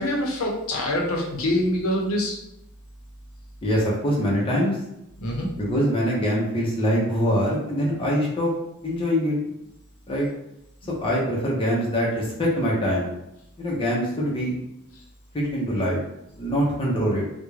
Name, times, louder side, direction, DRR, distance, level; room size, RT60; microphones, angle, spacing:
voice 1, 0.0-2.3 5.2-5.5, left 1 dB, 80° left, -1 dB, 0.6 m, -25 dB
voice 2, 3.6-4.8 5.6-8.5 8.8-9.4 10.1-10.3 11.0-13.1 13.6-14.6 15.3-16.0 16.4-17.3, equal, 25° left, -4 dB, 0.5 m, -23 dB
2.3 x 2.1 x 3.0 m, 0.84 s
head